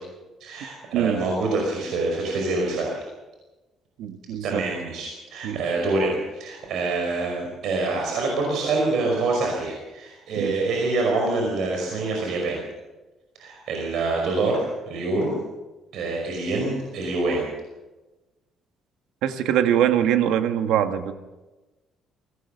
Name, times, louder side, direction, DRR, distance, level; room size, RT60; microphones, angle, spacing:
voice 1, 0.4-3.0 4.4-12.6 13.4-15.3 15.9-17.5, right 3 dB, 65° right, 0 dB, 5.4 m, -26 dB
voice 2, 0.9-1.3 4.0-4.6 5.4-5.6 10.4-10.6 19.2-21.1, right 10 dB, 85° right, 8 dB, 1.7 m, -23 dB
23.0 x 18.5 x 6.7 m, 1.1 s
cardioid pair, 155°, 0 cm